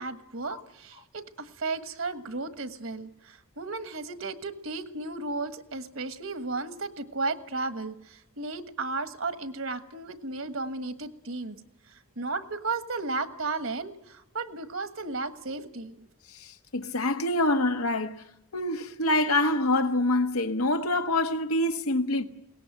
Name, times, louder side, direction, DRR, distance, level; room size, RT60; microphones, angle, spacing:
voice 1, 0.0-11.6 11.8-16.1, right 3 dB, 65° right, 1.4 m, -34 dB
voice 2, 16.3-18.2 18.5-22.2, left 1 dB, 90° left, 1.4 m, -26 dB
22.0 x 18.5 x 9.0 m
head